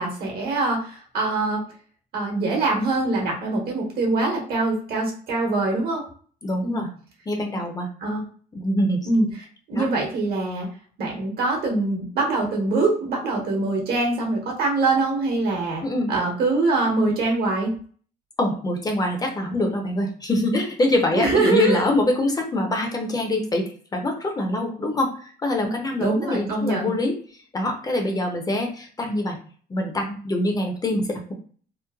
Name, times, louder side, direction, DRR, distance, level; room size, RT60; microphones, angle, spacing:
voice 1, 0.0-1.6 2.1-6.0 6.6-6.8 8.0-8.2 9.1-9.3 9.7-10.7 11.0-15.8 16.1-17.7 21.1-21.8 26.0-26.9, right 3 dB, 65° right, 0 dB, 1.1 m, -23 dB
voice 2, 6.4-6.9 7.3-7.9 8.5-9.0 9.8-9.9 15.8-16.1 18.4-27.1 27.5-29.4 29.7-31.3, left 1 dB, 20° left, 3 dB, 0.5 m, -24 dB
3.0 x 2.0 x 2.3 m, 0.44 s
cardioid pair, 110°, 17 cm